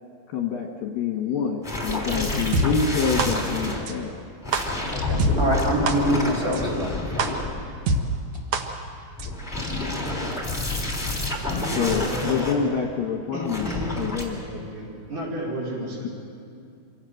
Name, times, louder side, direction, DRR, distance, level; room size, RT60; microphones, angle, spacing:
voice 1, 0.3-4.1 11.8-14.4, left 6 dB, 65° left, 2 dB, 2.5 m, -27 dB
sound 1, 1.6-3.8 4.4-7.9 9.1-12.5 13.4-14.2, left 2 dB, 5° left, 2.5 m, -28 dB
sound 2, 2.5-2.6 3.2-3.3 3.9-4.0 4.5-4.6 5.2-5.3 5.9-6.0 6.5-6.6 7.2-7.3 7.9-8.0 8.5-8.6 9.2-9.3, right 4 dB, 75° right, 1.7 m, -22 dB
voice 2, 4.9-6.9 7.1-7.5, equal, 20° right, -1 dB, 3.0 m, -25 dB
voice 3, 11.5-12.6 13.3-13.8 14.5-16.1, equal, 45° right, -3 dB, 6.2 m, -32 dB
26.0 x 17.0 x 7.8 m, 2.4 s
omnidirectional pair, 5.2 m